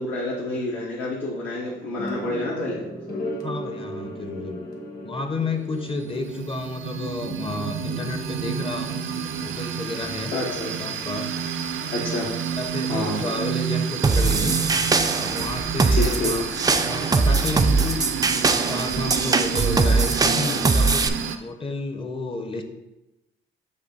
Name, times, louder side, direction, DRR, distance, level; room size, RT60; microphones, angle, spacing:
voice 1, 0.0-2.8 10.3-10.9 11.9-12.3 12.9-13.2 15.9-16.3, left 2 dB, 75° left, -7 dB, 1.4 m, -28 dB
sound 1, 2.0-7.1, equal, 50° left, 1.4 m, -36 dB
voice 2, 3.4-4.6 5.0-10.3 10.8-11.3 12.6-14.5 15.1-16.4 16.8-18.0 18.4-21.0 21.4-22.6, left 2 dB, 25° left, 6 dB, 0.7 m, -31 dB
sound 2, 5.5-21.4, right 7 dB, 80° right, 0.6 m, -30 dB
sound 3, 14.0-21.1, right 4 dB, 20° right, 0.4 m, -21 dB
6.6 x 2.7 x 5.4 m, 0.98 s
cardioid pair, 90°, 20 cm